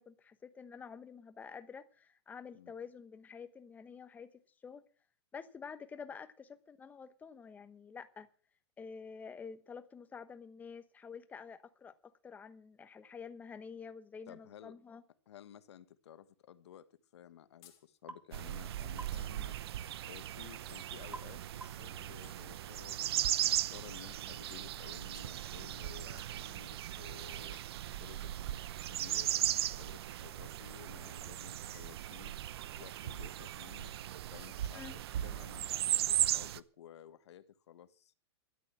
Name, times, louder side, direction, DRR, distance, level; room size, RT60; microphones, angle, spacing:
voice 1, 0.0-4.8 5.3-8.3 8.8-15.0 34.7-34.9, left 6 dB, 10° left, 1.0 m, -49 dB
voice 2, 14.3-14.7 15.3-19.6 20.0-27.6 27.9-28.3 28.9-32.3 32.8-33.9 34.3-34.9 35.2-38.1, left 10 dB, 80° left, 1.5 m, -54 dB
sound 1, 17.6-17.9 19.1-19.5 20.7-21.1 22.2-23.1 24.2-24.5 25.1-25.4 26.2-26.4 27.5-27.8 28.5-28.8 29.6-30.0 30.6-30.8 31.6-32.2, left 10 dB, 35° left, 3.6 m, -63 dB
sound 2, 18.1-18.3 19.0-19.2 21.1-21.3 21.6-21.9, right 3 dB, 10° right, 1.1 m, -47 dB
sound 3, 18.3-36.6, right 12 dB, 65° right, 0.8 m, -37 dB
13.0 x 10.0 x 7.4 m
supercardioid pair, 155°, 14 cm